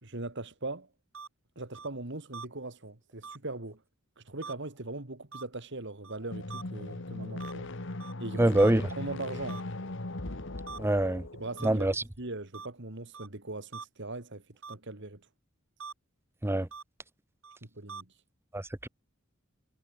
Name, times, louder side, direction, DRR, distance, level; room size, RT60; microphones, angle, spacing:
voice 1, 0.0-0.9 1.6-3.8 4.2-7.7 8.2-8.6 8.9-9.6 11.3-14.4 14.7-15.2 17.6-18.1, right 2 dB, 60° right, 2.6 m, -40 dB
sound 1, 1.1-1.3 1.7-1.9 2.3-2.5 3.2-3.4 4.4-4.5 5.3-5.4 6.0-6.2 6.5-6.6 7.4-7.5 8.0-8.1 8.6-8.7 9.5-9.6 10.7-10.8 11.6-11.7 12.5-12.7 13.1-13.3 13.7-13.8 14.6-14.8 15.8-15.9 16.7-16.8 17.4-17.6 17.9-18.0, right 5 dB, 90° right, 6.9 m, -43 dB
sound 2, 6.2-11.8, left 2 dB, 65° left, 1.7 m, -39 dB
voice 2, 8.4-8.8 10.8-11.2 11.6-11.9 16.4-16.7, right 1 dB, 10° right, 0.7 m, -23 dB
head